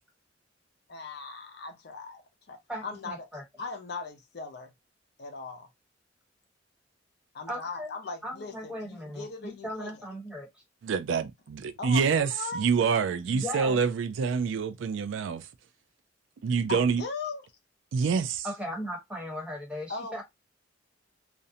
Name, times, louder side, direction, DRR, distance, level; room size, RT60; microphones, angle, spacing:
voice 1, 0.9-2.2 2.5-3.3 3.6-4.7 5.2-5.7 7.3-9.9 11.8-12.7 16.7-17.5 19.9-20.2, left 4 dB, 55° left, 0.6 m, -39 dB
voice 2, 2.7-3.4 7.5-7.9 8.2-10.5 13.3-13.8 18.4-20.2, equal, 5° right, 0.9 m, -37 dB
voice 3, 10.8-15.5 16.4-17.0 17.9-18.5, right 5 dB, 75° right, 0.3 m, -27 dB
2.5 x 2.1 x 2.6 m
head